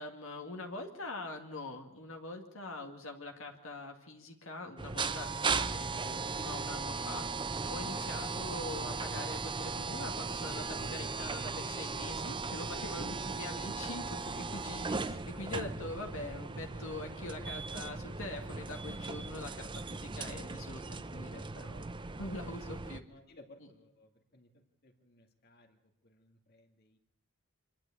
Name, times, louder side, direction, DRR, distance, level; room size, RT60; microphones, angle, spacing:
voice 1, 0.0-7.4 7.7-21.9 22.2-23.1 23.6-23.7, left 2 dB, 65° left, 4 dB, 2.1 m, -43 dB
sound 1, 4.8-23.0, right 4 dB, 20° right, 0.6 m, -37 dB
voice 2, 23.1-27.0, left 2 dB, 45° left, 4 dB, 2.1 m, -60 dB
26.0 x 11.5 x 8.5 m, 0.88 s
head